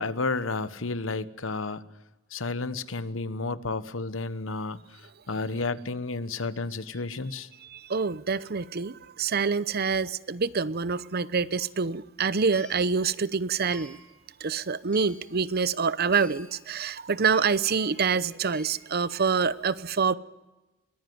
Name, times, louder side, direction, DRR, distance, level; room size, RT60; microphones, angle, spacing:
voice 1, 0.0-1.8 2.3-7.5, left 3 dB, 80° left, 14 dB, 1.2 m, -32 dB
voice 2, 7.7-14.0 14.4-20.1, right 5 dB, 50° right, 17 dB, 0.8 m, -26 dB
sound 1, 11.7-11.8 12.5-12.9 13.7-14.2 14.9-15.3 16.1-16.6 17.3-17.7 18.5-19.0, left 1 dB, 5° left, 4.1 m, -50 dB
23.0 x 20.0 x 9.5 m, 1.0 s
head